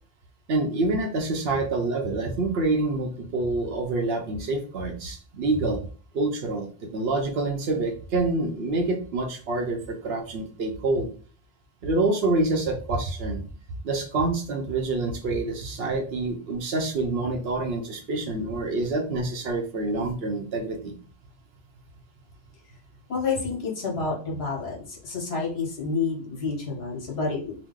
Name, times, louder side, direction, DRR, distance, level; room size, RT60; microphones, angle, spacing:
voice 1, 0.5-5.8 6.1-11.1 11.8-13.4 13.8-20.9, right 2 dB, 70° right, 4 dB, 0.8 m, -27 dB
voice 2, 23.1-27.5, left 4 dB, 65° left, -2 dB, 1.3 m, -29 dB
2.9 x 2.1 x 3.6 m, 0.40 s
omnidirectional pair, 1.1 m